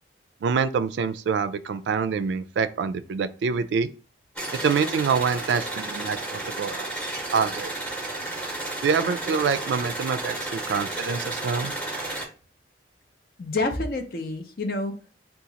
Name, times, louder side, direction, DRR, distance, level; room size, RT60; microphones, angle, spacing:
voice 1, 0.4-3.9 4.5-6.9 7.3-7.7 8.8-11.7, right 6 dB, 75° right, 0.3 m, -26 dB
sound 1, 4.4-12.3, right 2 dB, 5° left, 0.8 m, -32 dB
voice 2, 13.4-15.2, left 2 dB, 55° left, 0.5 m, -28 dB
2.8 x 2.4 x 3.8 m
head